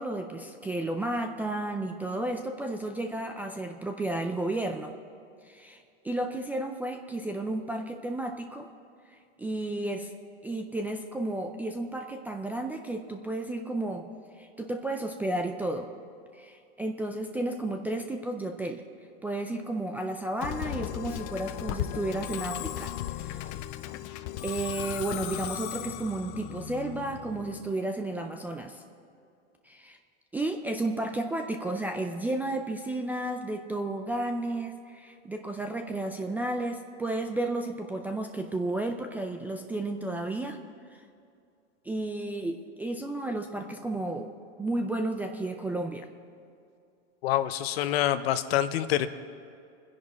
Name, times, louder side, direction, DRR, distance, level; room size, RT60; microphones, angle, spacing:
voice 1, 0.0-4.9 5.4-8.7 9.4-10.1 10.4-14.1 14.4-15.9 16.3-18.8 19.2-22.9 23.2-23.4 24.4-28.8 29.6-30.0 30.3-40.6 40.9-41.0 41.8-44.3 44.6-46.1, right 2 dB, 5° right, 4 dB, 0.4 m, -32 dB
Musical instrument, 20.4-27.7, left 13 dB, 40° left, 0.7 m, -36 dB
voice 2, 47.2-49.1, left 12 dB, 65° left, 12 dB, 1.0 m, -26 dB
25.0 x 10.5 x 4.2 m, 2.5 s
supercardioid pair, 140°, 34 cm